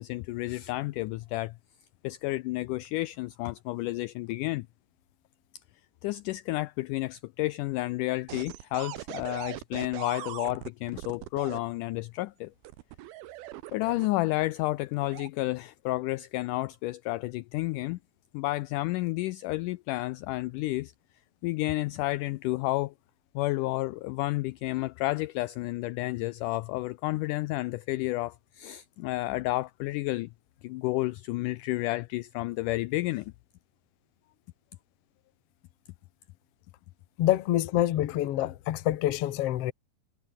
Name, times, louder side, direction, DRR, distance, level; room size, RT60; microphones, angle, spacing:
voice 1, 0.0-1.5 2.0-4.7 6.0-12.5 13.7-18.0 18.3-20.9 21.4-22.9 23.4-30.3 30.6-33.3, left 19 dB, 85° left, 1.8 m, -31 dB
sound 1, 8.3-11.6 12.6-14.3 14.9-15.3, right 16 dB, 85° right, 2.9 m, -40 dB
voice 2, 37.2-39.7, left 13 dB, 70° left, 1.5 m, -26 dB
omnidirectional pair, 4.3 m